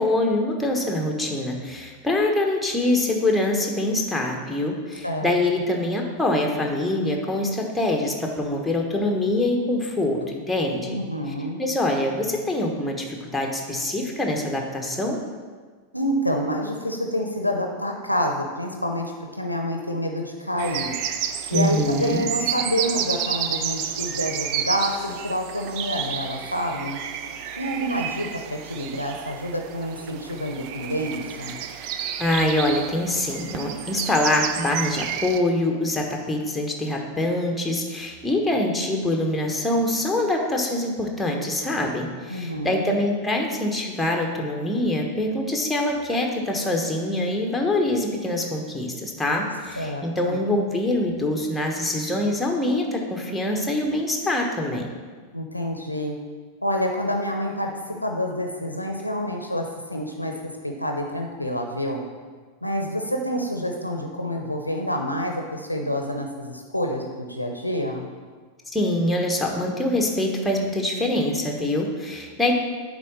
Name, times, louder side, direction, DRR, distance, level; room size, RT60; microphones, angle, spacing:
voice 1, 0.0-11.0 11.6-15.2 21.5-22.2 32.2-54.9 68.7-72.5, left 1 dB, 5° left, 1 dB, 1.2 m, -24 dB
voice 2, 10.8-11.6 15.9-20.9 21.5-27.0 27.6-31.6 42.3-43.0 49.8-50.4 55.3-56.2 56.6-57.7 58.0-60.3 60.6-62.0 62.6-68.1, equal, 90° left, 2 dB, 0.7 m, -28 dB
sound 1, 20.6-35.4, right 9 dB, 40° right, 0.5 m, -31 dB
9.0 x 3.7 x 6.4 m, 1.5 s
figure-of-eight pair, 90°, 0 cm